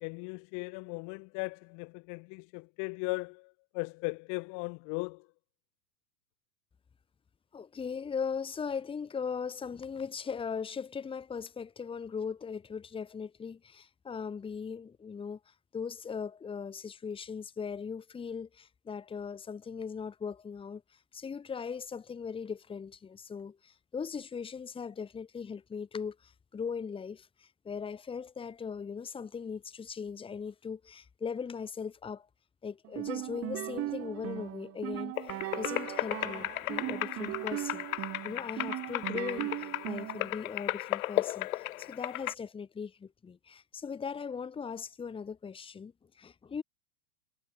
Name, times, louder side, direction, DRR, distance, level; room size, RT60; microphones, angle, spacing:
voice 1, 0.0-5.3, left 32 dB, 40° left, 6.6 m, -38 dB
voice 2, 7.5-32.3 32.6-37.9 38.2-46.6, left 6 dB, 10° left, 2.6 m, -39 dB
sound 1, 32.8-40.3, right 16 dB, 30° right, 5.1 m, -38 dB
sound 2, 35.2-42.3, left 16 dB, 60° left, 1.8 m, -35 dB
supercardioid pair, 150°, 47 cm